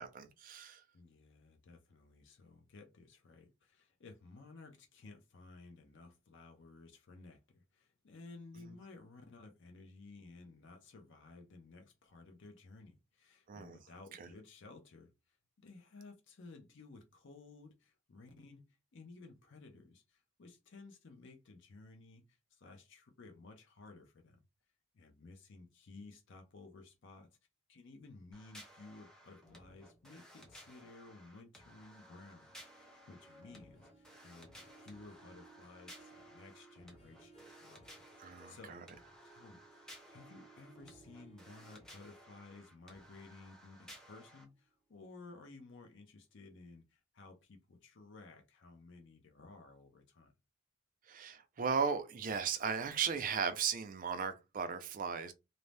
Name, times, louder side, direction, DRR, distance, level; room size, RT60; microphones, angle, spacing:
voice 1, 0.0-0.8 13.5-13.8 14.2-14.3 38.2-38.8 51.1-55.3, right 6 dB, 40° right, 0.4 m, -36 dB
voice 2, 0.9-24.4 24.9-27.4 27.7-37.9 38.1-38.8 39.2-50.3, left 3 dB, 55° left, 0.5 m, -56 dB
sound 1, 28.3-44.4, equal, 5° left, 0.6 m, -58 dB
Harp, 31.9-44.6 45.1-45.5 45.9-46.0, right 3 dB, 30° left, 0.9 m, -63 dB
2.6 x 2.0 x 3.2 m
head